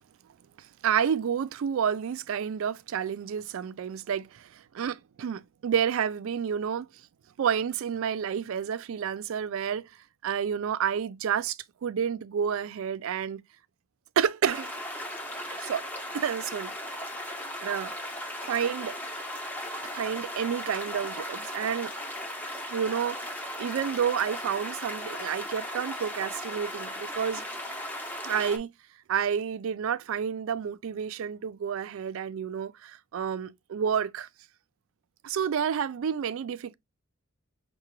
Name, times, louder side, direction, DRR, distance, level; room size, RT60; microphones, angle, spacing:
voice 1, 0.8-6.9 7.4-9.9 10.2-13.4 14.2-14.7 15.5-15.9 16.1-16.7 17.6-17.9 18.5-19.0 19.8-21.9 22.7-23.2 23.6-27.4 28.2-28.7 29.1-34.3 35.2-36.7, right 8 dB, 65° right, 0.3 m, -30 dB
sound 1, 14.5-28.6, left 1 dB, 10° left, 0.6 m, -37 dB
5.6 x 2.2 x 2.9 m
head